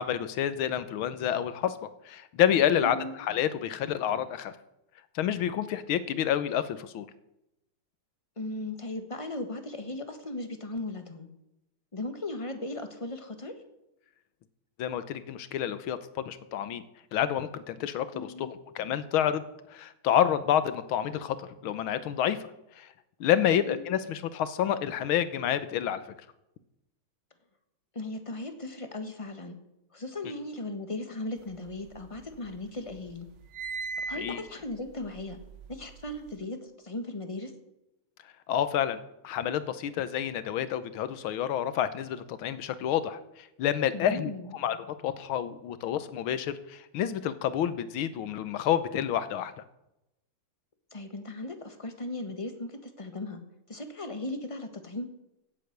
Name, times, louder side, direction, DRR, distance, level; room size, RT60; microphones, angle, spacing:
voice 1, 0.0-1.7 2.0-4.5 5.1-7.1 14.8-16.8 17.1-18.5 18.7-19.4 19.7-22.5 22.8-22.9 23.2-26.0 34.2-34.4 38.5-44.8 45.0-49.5, left 10 dB, 80° left, 13 dB, 1.7 m, -29 dB
voice 2, 2.8-3.2 8.4-11.3 11.9-13.6 18.1-18.5 23.5-23.8 27.9-29.6 29.9-33.3 34.1-35.4 35.7-37.5 43.9-44.5 50.9-53.4 53.7-55.1, left 2 dB, 20° left, 7 dB, 1.1 m, -37 dB
sound 1, 31.5-32.6 32.9-36.3, right 4 dB, 75° right, 1.8 m, -40 dB
16.0 x 8.2 x 6.7 m, 0.88 s
omnidirectional pair, 2.3 m